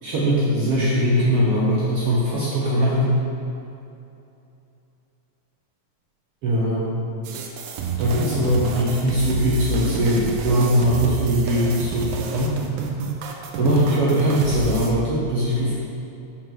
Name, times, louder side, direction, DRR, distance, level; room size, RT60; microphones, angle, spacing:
voice 1, 0.0-3.1 6.4-7.1 8.0-12.6 13.6-15.7, equal, 60° right, -7 dB, 1.6 m, -21 dB
sound 1, 7.2-14.9, right 4 dB, 90° right, 2.4 m, -29 dB
6.4 x 5.0 x 6.1 m, 2.7 s
omnidirectional pair, 3.9 m